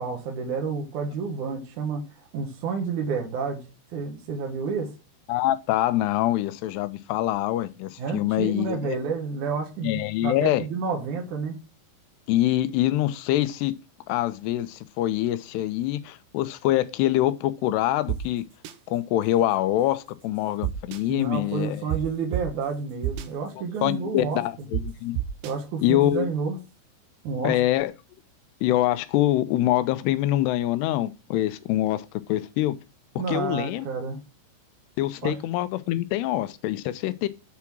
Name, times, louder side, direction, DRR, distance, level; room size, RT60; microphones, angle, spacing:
voice 1, 0.0-2.0 2.3-3.7 3.9-4.9 8.0-11.6 21.1-24.4 25.4-26.6 27.2-27.6 33.2-34.2 35.2-35.4, right 5 dB, 55° right, 2.6 m, -30 dB
voice 2, 5.3-9.0 9.8-10.7 12.3-13.7 14.1-18.4 18.9-21.8 23.6-25.2 25.8-26.3 27.4-27.9 28.6-32.8 33.3-33.9 35.0-37.3, left 14 dB, 80° left, 2.7 m, -25 dB
sound 1, 18.1-18.2 18.6-18.7 20.6-21.0 21.9-22.0 22.3-22.4 23.0-23.3 24.7-24.8 25.2-25.5, right 15 dB, 85° right, 3.0 m, -27 dB
8.4 x 4.8 x 6.0 m
omnidirectional pair, 4.9 m